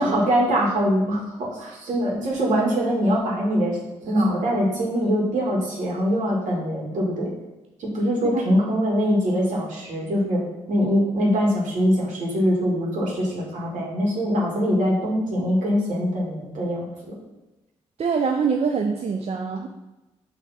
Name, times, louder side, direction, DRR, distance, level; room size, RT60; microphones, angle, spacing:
voice 1, 0.0-3.8 4.0-7.3 7.8-10.4 10.7-16.9, equal, 65° right, -3 dB, 2.2 m, -23 dB
voice 2, 18.0-19.7, right 5 dB, 50° right, 3 dB, 0.6 m, -24 dB
6.8 x 3.5 x 4.3 m, 1.0 s
hypercardioid pair, 45°, 14 cm